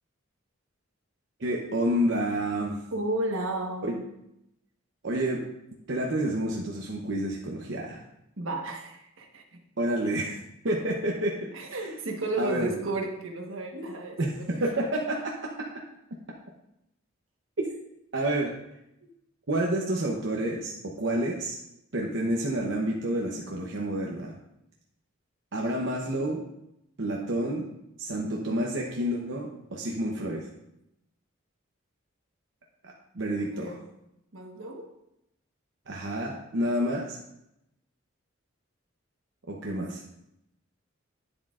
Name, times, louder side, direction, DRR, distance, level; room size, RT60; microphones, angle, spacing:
voice 1, 1.4-2.8 3.8-4.0 5.0-5.4 5.9-8.0 9.8-10.4 10.6-11.8 12.4-12.7 14.2-15.3 18.1-18.5 19.5-21.6 21.9-24.3 25.5-26.4 27.0-27.7 28.0-30.4 32.8-33.8 35.9-37.2 39.5-40.0, right 1 dB, 65° right, -1 dB, 0.9 m, -29 dB
voice 2, 2.9-4.0 8.4-9.6 11.5-14.2 14.5-14.6 19.0-19.1 33.3-33.8 34.3-34.9, right 2 dB, 80° right, 2 dB, 1.3 m, -33 dB
10.0 x 7.4 x 2.5 m, 0.83 s
head